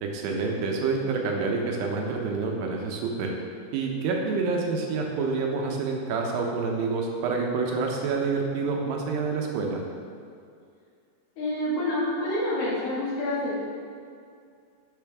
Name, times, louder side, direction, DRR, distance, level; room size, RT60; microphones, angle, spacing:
voice 1, 0.0-3.3 3.7-9.8, right 4 dB, 80° right, 0 dB, 2.9 m, -27 dB
voice 2, 11.4-13.6, left 1 dB, 60° left, -7 dB, 3.4 m, -27 dB
10.5 x 7.3 x 3.5 m, 2.3 s
omnidirectional pair, 4.9 m